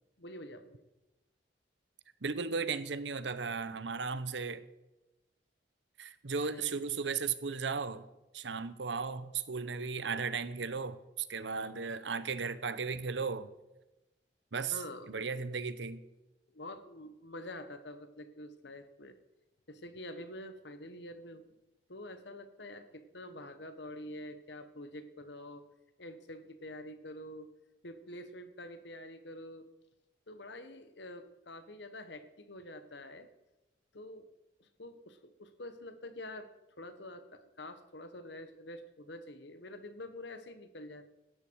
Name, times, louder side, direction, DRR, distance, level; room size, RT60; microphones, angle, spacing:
voice 1, 0.2-0.8 6.5-6.8 14.7-15.2 16.5-19.2 19.7-21.5 21.9-25.6 26.0-27.5 27.8-29.7 30.3-33.3 33.9-34.3 34.6-36.5 36.8-41.1, left 1 dB, 70° left, 1.4 m, -47 dB
voice 2, 2.2-4.6 6.0-8.0 8.3-13.5 14.5-14.7 15.1-16.0, right 5 dB, 75° right, 0.9 m, -36 dB
17.0 x 13.0 x 4.8 m
head